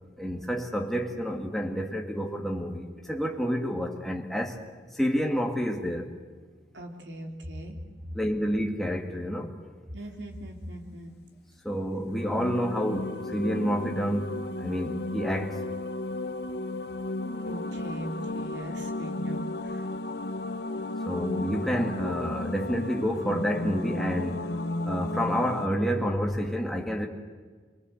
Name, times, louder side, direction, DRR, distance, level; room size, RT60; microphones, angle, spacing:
voice 1, 0.2-4.6 5.0-6.1 8.1-9.5 11.6-15.6 21.1-24.6 24.8-27.1, equal, ahead, 2.1 m, -29 dB
voice 2, 6.7-7.8 9.9-11.1 17.4-19.9, right 1 dB, 80° right, 3.2 m, -40 dB
sound 1, 12.0-25.7, left 2 dB, 60° left, 0.9 m, -34 dB
26.0 x 23.0 x 7.9 m
head